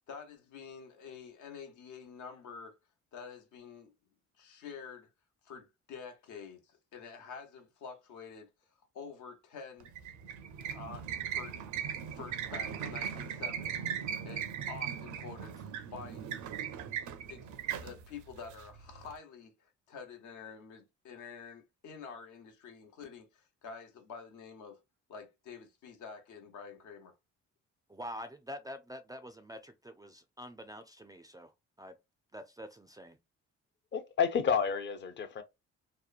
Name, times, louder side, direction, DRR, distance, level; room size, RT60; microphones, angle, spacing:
voice 1, 0.1-2.8 3.1-3.9 4.4-5.1 5.4-8.5 8.8-9.9 10.7-11.6 12.1-13.8 14.2-16.3 17.3-24.8 25.1-27.1, left 5 dB, 75° left, 0.8 m, -48 dB
sound 1, 9.8-19.1, right 8 dB, 70° right, 0.5 m, -39 dB
voice 2, 27.9-31.5 31.8-32.0 32.3-33.2, equal, 15° right, 0.3 m, -46 dB
voice 3, 33.9-35.4, left 6 dB, 40° left, 0.5 m, -30 dB
2.9 x 2.1 x 2.4 m
cardioid pair, 90°, 30 cm